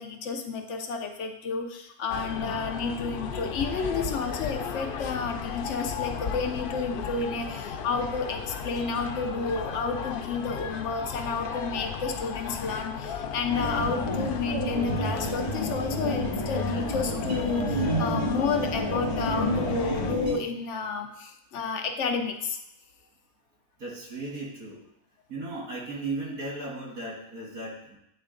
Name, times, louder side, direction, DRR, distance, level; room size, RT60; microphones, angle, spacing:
voice 1, 0.0-22.6, left 4 dB, 65° left, 5 dB, 0.9 m, -31 dB
sound 1, 2.1-20.1, left 6 dB, 90° left, 0.4 m, -35 dB
sound 2, 13.5-20.3, equal, 35° right, 2.6 m, -29 dB
voice 2, 23.8-24.8 25.3-28.0, right 2 dB, 90° right, -2 dB, 2.0 m, -36 dB
8.7 x 3.3 x 3.8 m, 0.81 s
omnidirectional pair, 1.5 m